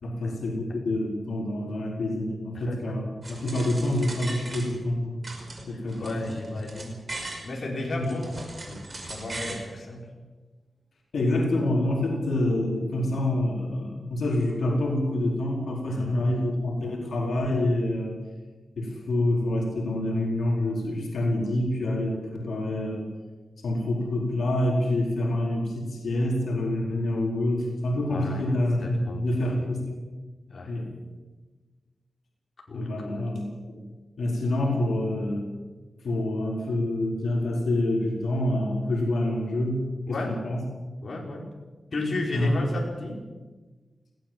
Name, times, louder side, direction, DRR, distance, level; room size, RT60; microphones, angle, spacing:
voice 1, 0.0-3.1 3.4-5.4 5.7-6.3 8.0-8.2 11.1-18.1 18.8-23.1 23.6-29.9 30.7-30.9 32.7-33.8 34.2-35.5 36.0-40.6 42.3-42.7, left 1 dB, 80° left, -1 dB, 4.6 m, -27 dB
voice 2, 2.5-2.9 5.7-6.9 7.4-10.0 15.8-16.3 28.1-28.4 28.8-29.2 30.5-30.7 32.7-33.3 40.1-40.4 41.0-41.4 41.9-43.2, left 2 dB, 55° left, -1 dB, 5.1 m, -33 dB
sound 1, 3.2-4.9 5.2-7.5 7.9-9.7, right 2 dB, 35° right, 5.7 m, -39 dB
20.0 x 17.0 x 7.7 m, 1.3 s
wide cardioid pair, 100°, 0 cm